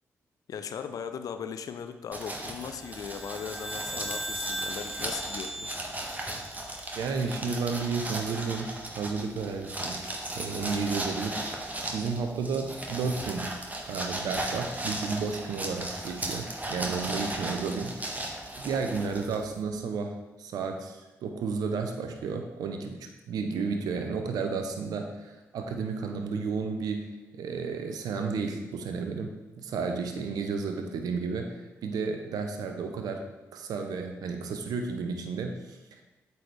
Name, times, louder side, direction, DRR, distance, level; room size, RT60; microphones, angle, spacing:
voice 1, 0.5-5.7, left 7 dB, 65° left, 8 dB, 0.5 m, -38 dB
sound 1, 2.1-19.6, right 1 dB, 25° right, 1.3 m, -36 dB
sound 2, 2.8-7.3, right 1 dB, 5° right, 0.4 m, -39 dB
voice 2, 7.0-10.0 10.3-11.5 11.9-13.5 13.9-18.0 18.6-29.3 29.6-33.2 33.5-36.0, right 5 dB, 75° right, 4 dB, 0.6 m, -32 dB
8.0 x 4.2 x 3.3 m, 1.1 s
hypercardioid pair, 45°, 7 cm